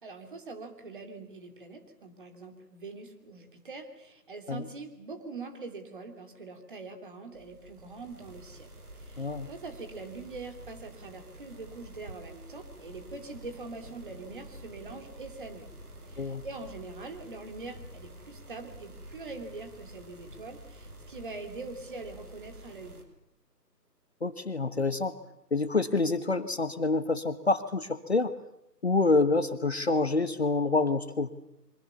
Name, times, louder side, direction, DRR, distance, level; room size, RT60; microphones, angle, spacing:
voice 1, 0.0-8.7 8.9-15.7 16.1-23.0, right 3 dB, 30° right, 6 dB, 3.2 m, -43 dB
sound 1, 7.3-23.0, right 1 dB, 60° right, 5.3 m, -49 dB
voice 2, 24.2-25.2 25.5-28.3 28.8-31.3, left 3 dB, 40° left, 12 dB, 1.2 m, -27 dB
26.5 x 24.5 x 7.0 m, 0.80 s
figure-of-eight pair, 160°, 50 cm